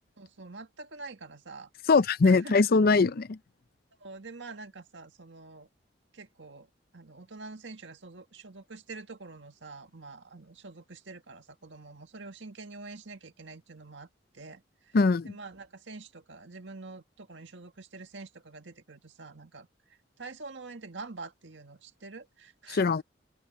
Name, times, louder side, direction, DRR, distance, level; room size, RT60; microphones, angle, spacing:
voice 1, 0.2-1.9 2.2-2.6 2.9-3.0 4.0-5.7 6.1-14.1 14.3-15.0 15.2-22.9, right 3 dB, 80° right, 1.8 m, -46 dB
voice 2, 1.9-3.4 14.9-15.3 22.7-23.0, left 4 dB, 55° left, 0.5 m, -22 dB
open air
head